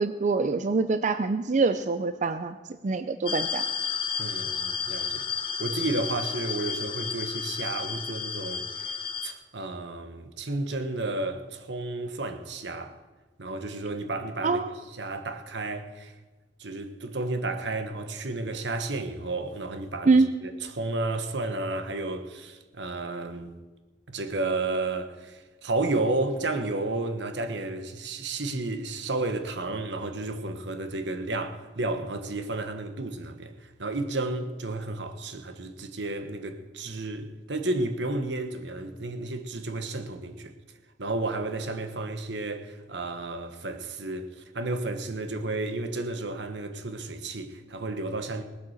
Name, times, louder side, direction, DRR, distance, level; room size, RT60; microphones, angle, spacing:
voice 1, 0.0-2.6 2.8-3.6 14.4-14.7 20.1-20.3, right 3 dB, 45° right, 0.5 m, -24 dB
sound 1, 3.3-9.3, left 6 dB, 30° left, 0.9 m, -32 dB
voice 2, 4.2-5.3 5.6-8.9 9.2-13.0 13.4-14.6 15.0-16.1 16.6-23.5 24.1-40.5 41.0-44.3 44.5-48.4, right 2 dB, 75° right, 1.3 m, -32 dB
19.0 x 8.5 x 6.5 m
head